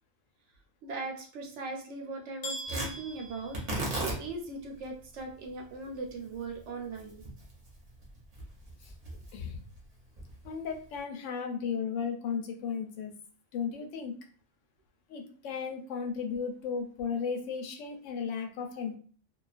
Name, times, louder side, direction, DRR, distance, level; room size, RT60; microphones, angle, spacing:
voice 1, 0.8-7.2, right 3 dB, 70° right, 2 dB, 0.9 m, -39 dB
sound 1, 2.4-4.4, equal, 40° left, 0.7 m, -42 dB
Tearing, 2.6-11.0, right 1 dB, 35° right, 0.7 m, -40 dB
voice 2, 9.3-9.6 10.4-13.1 13.5-14.1 15.1-19.0, left 6 dB, 75° left, 3 dB, 0.9 m, -35 dB
2.3 x 2.3 x 2.4 m, 0.42 s
omnidirectional pair, 1.3 m